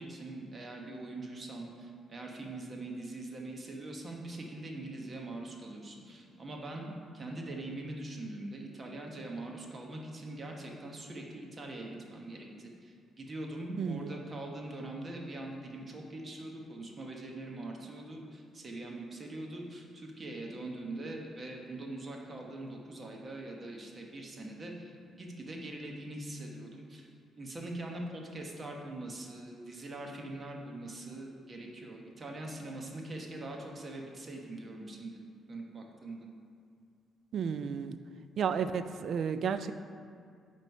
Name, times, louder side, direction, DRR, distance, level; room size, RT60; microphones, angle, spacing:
voice 1, 0.0-24.9 25.2-27.1 27.4-35.2 35.5-36.2, right 2 dB, 35° right, 0 dB, 1.1 m, -42 dB
voice 2, 13.8-14.1 37.3-38.0 38.4-39.7, right 7 dB, 60° right, 11 dB, 0.3 m, -32 dB
9.0 x 3.3 x 5.4 m, 2.2 s
cardioid pair, 90°, 0 cm